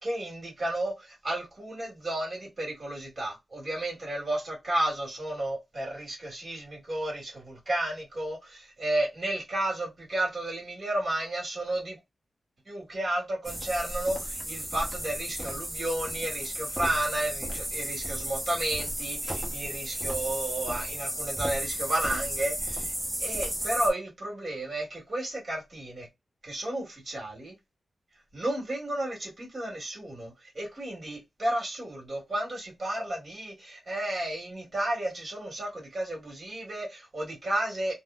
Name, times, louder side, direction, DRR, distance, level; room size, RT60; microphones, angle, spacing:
voice 1, 0.0-12.0 12.7-22.9 23.2-26.1 26.4-27.5 28.3-38.0, right 1 dB, 40° right, 1.8 m, -32 dB
sound 1, 13.4-23.9, right 1 dB, 10° right, 0.9 m, -34 dB
3.6 x 2.0 x 2.4 m
wide cardioid pair, 105°, 0 cm